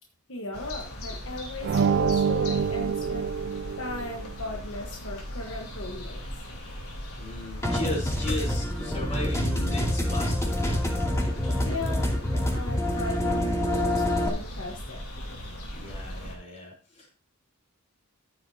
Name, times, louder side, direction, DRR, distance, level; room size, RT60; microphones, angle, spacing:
voice 1, 0.3-3.5 3.8-6.2 11.6-12.1 12.5-15.0, left 2 dB, 60° left, 1 dB, 1.2 m, -37 dB
sound 1, 0.5-16.3, equal, 85° left, 3.8 m, -39 dB
sound 2, 1.6-4.3, right 6 dB, 55° right, 0.3 m, -26 dB
voice 2, 7.2-11.0 15.7-17.1, left 1 dB, 30° left, -2 dB, 3.7 m, -37 dB
sound 3, 7.6-14.3, left 1 dB, 15° left, 2.5 m, -26 dB
14.5 x 7.8 x 2.7 m, 0.39 s
head